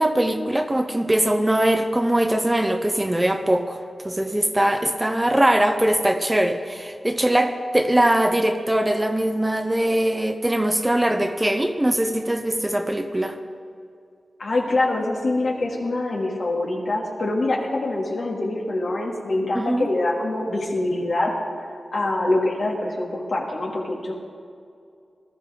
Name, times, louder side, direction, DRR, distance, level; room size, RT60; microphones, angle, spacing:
voice 1, 0.0-13.4 19.5-19.9, right 1 dB, 15° right, 7 dB, 0.8 m, -21 dB
voice 2, 14.4-21.4 21.9-24.1, left 2 dB, 65° left, -1 dB, 2.5 m, -24 dB
19.5 x 13.0 x 3.8 m, 2.4 s
wide cardioid pair, 105°, 0 cm